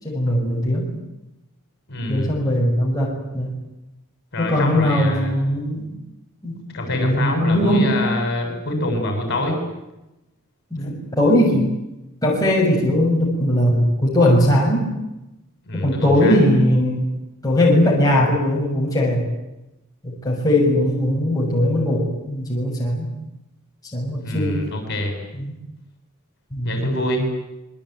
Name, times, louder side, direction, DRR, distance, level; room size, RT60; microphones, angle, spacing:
voice 1, 0.0-0.9 2.1-3.5 4.4-5.9 6.4-6.6 6.9-8.0 10.7-11.7 12.2-14.9 15.7-17.1 17.4-19.3 20.0-23.1 23.9-24.6 25.4-25.6 26.5-26.9, left 1 dB, 15° left, -3 dB, 6.8 m, -19 dB
voice 2, 1.9-2.3 4.3-5.3 6.7-9.6 15.7-16.4 24.2-25.1 26.6-27.3, left 1 dB, 50° left, 4 dB, 7.5 m, -25 dB
26.5 x 23.0 x 9.4 m, 0.94 s
head